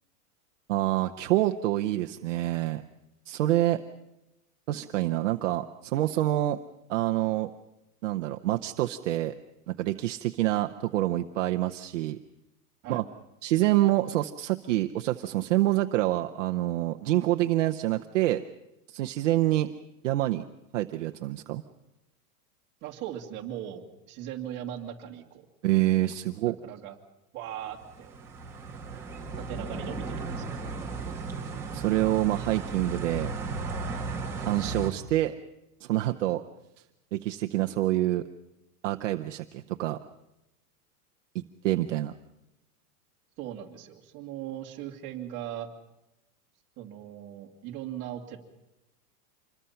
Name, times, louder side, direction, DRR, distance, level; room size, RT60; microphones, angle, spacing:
voice 1, 0.7-2.8 3.3-3.8 4.7-6.6 6.9-7.5 8.0-9.3 9.7-12.2 12.9-13.0 13.4-18.4 18.9-19.7 20.0-20.4 20.7-21.6 25.6-26.6 31.7-33.3 34.4-35.3 35.8-36.4 37.1-38.2 38.8-40.0 41.3-42.1, right 15 dB, 50° right, 5 dB, 0.8 m, -26 dB
voice 2, 22.8-25.5 26.6-27.0 27.3-28.1 29.3-30.7 43.4-45.7 46.8-48.4, right 11 dB, 25° right, 0 dB, 2.0 m, -39 dB
sound 1, 27.7-34.9, right 3 dB, 5° right, 1.6 m, -35 dB
26.5 x 21.5 x 5.7 m, 0.93 s
supercardioid pair, 175°, 47 cm